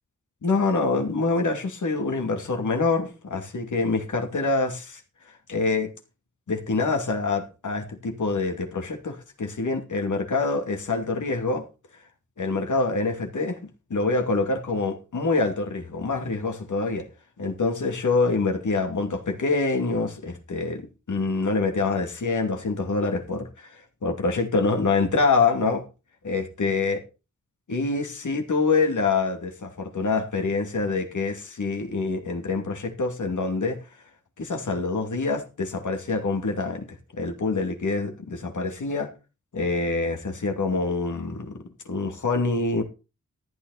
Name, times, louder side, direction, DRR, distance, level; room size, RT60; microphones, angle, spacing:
voice 1, 0.4-5.0 5.5-5.9 6.5-11.7 12.4-17.1 17.4-20.8 21.1-25.8 26.2-27.0 27.7-33.8 34.4-36.9 37.2-39.1 39.5-41.6 41.9-42.8, left 3 dB, 85° left, 2.5 m, -25 dB
14.0 x 9.5 x 4.2 m
wide cardioid pair, 85°, 30 cm